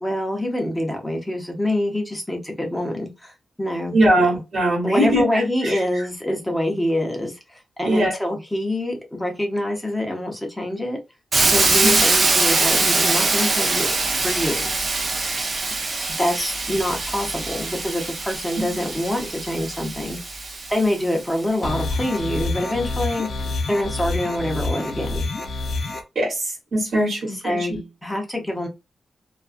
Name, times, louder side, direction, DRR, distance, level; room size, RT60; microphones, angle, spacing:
voice 1, 0.0-4.3 4.8-11.0 11.5-13.9 14.2-14.7 16.2-20.2 20.7-23.3 23.7-25.3 27.3-28.7, left 1 dB, 5° left, 0.7 m, -25 dB
voice 2, 3.9-5.8 7.8-8.1 11.8-12.0 18.6-18.7 26.1-27.8, right 1 dB, 50° right, 1.2 m, -21 dB
Hiss, 11.3-21.2, right 3 dB, 35° right, 0.4 m, -23 dB
sound 1, 21.6-26.0, left 3 dB, 55° left, 0.5 m, -27 dB
2.3 x 2.2 x 2.5 m
wide cardioid pair, 155°, 0 cm